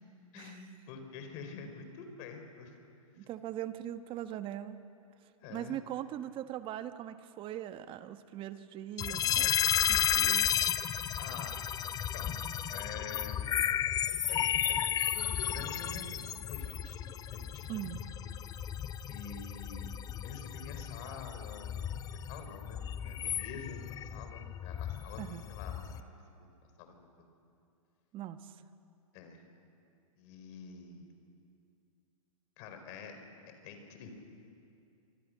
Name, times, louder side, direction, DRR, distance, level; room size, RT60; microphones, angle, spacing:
voice 1, 0.3-2.8 5.4-5.8 11.2-11.7 12.1-12.3 12.7-13.4 14.3-17.0 17.3-17.8 19.1-19.9 20.2-21.8 22.1-26.0 26.3-26.5 26.8-27.3 29.1-29.4 30.2-31.1 32.6-33.1 33.6-34.1, left 5 dB, 40° left, 6 dB, 4.4 m, -47 dB
voice 2, 3.2-4.8 5.5-10.5 17.7-18.0 25.2-25.4 28.1-28.6, right 11 dB, 30° right, 10 dB, 1.2 m, -41 dB
sound 1, 9.0-26.0, left 9 dB, 20° left, 0.8 m, -33 dB
26.5 x 25.0 x 6.5 m, 2.6 s
hypercardioid pair, 120°, 18 cm